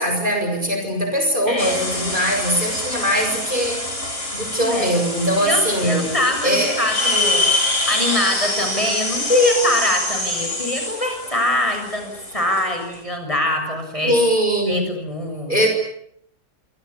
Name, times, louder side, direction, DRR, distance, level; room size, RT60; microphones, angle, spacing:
voice 1, 0.0-3.9 4.3-6.1 6.4-6.8 14.0-14.9 15.5-15.7, equal, 30° right, 4 dB, 6.8 m, -21 dB
voice 2, 1.4-1.8 4.6-4.9 5.4-7.5 7.8-14.2 14.7-15.7, left 1 dB, 20° left, 4 dB, 7.2 m, -23 dB
sound 1, 1.6-13.0, left 2 dB, 50° left, 7.0 m, -25 dB
27.0 x 25.0 x 8.6 m, 0.72 s
omnidirectional pair, 1.7 m